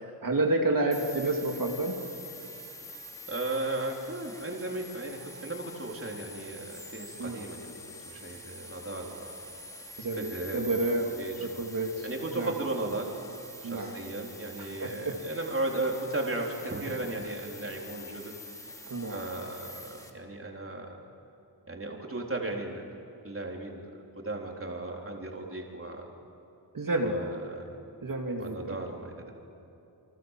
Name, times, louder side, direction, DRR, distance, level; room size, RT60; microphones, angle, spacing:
voice 1, 0.0-2.0 7.2-7.4 10.0-11.1 11.4-12.1 12.3-12.5 13.6-14.0 14.6-15.2 18.9-19.2 26.7-27.1 28.0-28.8, right 2 dB, 50° right, 1 dB, 2.6 m, -30 dB
sound 1, 0.9-20.1, left 1 dB, 10° left, 3.0 m, -46 dB
voice 2, 3.3-9.3 10.2-10.7 11.2-11.6 12.0-13.1 13.6-18.4 19.1-21.0 21.7-22.9 23.2-26.1 27.0-27.7 28.4-29.3, right 2 dB, 30° right, 0 dB, 4.1 m, -36 dB
29.0 x 24.5 x 7.6 m, 2.9 s
wide cardioid pair, 120°, 41 cm